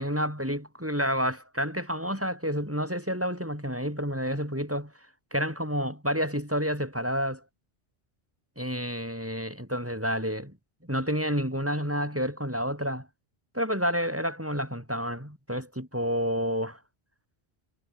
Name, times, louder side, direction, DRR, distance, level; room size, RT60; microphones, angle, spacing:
voice 1, 0.0-4.9 5.3-7.4 8.6-10.6 10.8-13.1 13.5-16.8, equal, 10° right, 6.5 m, -29 dB
omnidirectional pair, 1.1 m